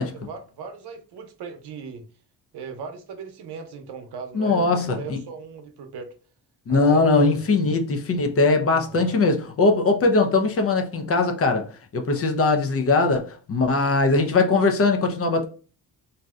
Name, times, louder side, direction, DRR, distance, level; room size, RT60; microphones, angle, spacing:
voice 1, 0.0-2.0 2.5-6.1 6.7-7.6 8.8-9.3, right 5 dB, 85° right, 0.7 m, -38 dB
voice 2, 4.3-5.2 6.7-11.7 11.9-15.5, left 3 dB, 35° left, 0.4 m, -20 dB
2.6 x 2.1 x 3.5 m
wide cardioid pair, 160°, 39 cm